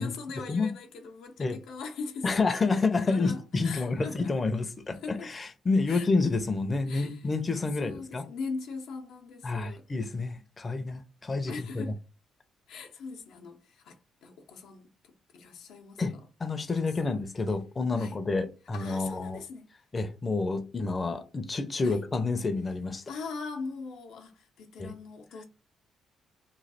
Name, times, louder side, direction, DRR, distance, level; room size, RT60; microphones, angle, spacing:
voice 1, 0.0-2.4 3.1-4.3 5.0-5.3 5.9-6.3 6.9-7.3 7.8-9.8 11.5-12.0 12.7-16.0 17.0-17.2 18.0-18.2 18.7-19.6 21.8-22.1 23.1-25.4, left 4 dB, 85° left, 0.7 m, -41 dB
voice 2, 2.2-8.3 9.4-11.8 16.0-16.1 16.4-19.4 19.9-23.0 24.8-24.9, left 3 dB, 30° left, 0.6 m, -29 dB
3.1 x 2.3 x 4.1 m
cardioid pair, 90°, 0 cm